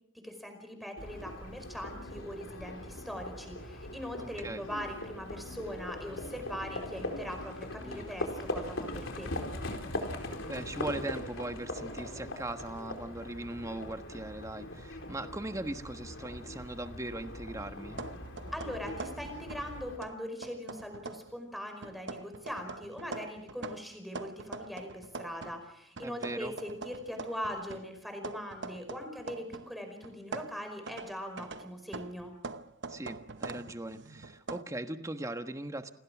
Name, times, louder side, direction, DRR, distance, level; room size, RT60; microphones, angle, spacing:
voice 1, 0.1-9.3 18.5-32.3, equal, ahead, 5 dB, 5.1 m, -41 dB
Livestock farm animals working animals, 1.0-20.0, left 1 dB, 70° left, 4.2 m, -41 dB
voice 2, 4.2-4.6 7.8-8.1 10.5-18.0 26.0-26.5 32.9-35.9, right 1 dB, 15° right, 8 dB, 1.3 m, -39 dB
sound 1, 17.9-19.7 20.0-21.4 21.8-25.6 26.0-29.7 30.0-34.6, right 3 dB, 60° right, 1.0 m, -44 dB
28.5 x 19.5 x 6.1 m, 0.76 s
head